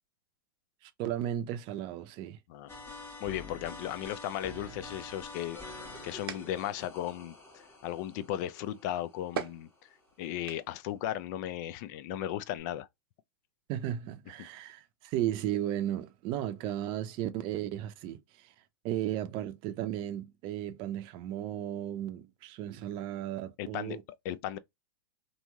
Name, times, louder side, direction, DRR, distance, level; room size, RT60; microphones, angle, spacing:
voice 1, 0.8-2.4 13.7-18.5 18.8-24.0, right 12 dB, 45° right, 0.5 m, -35 dB
sound 1, 2.7-9.9, left 2 dB, 20° left, 1.2 m, -47 dB
voice 2, 3.2-5.6 6.0-9.9 10.2-12.9 23.6-24.0 24.2-24.6, left 12 dB, 55° left, 0.4 m, -36 dB
sound 2, 5.5-10.9, right 7 dB, 85° right, 0.7 m, -45 dB
2.9 x 2.7 x 2.2 m
hypercardioid pair, 115°, 12 cm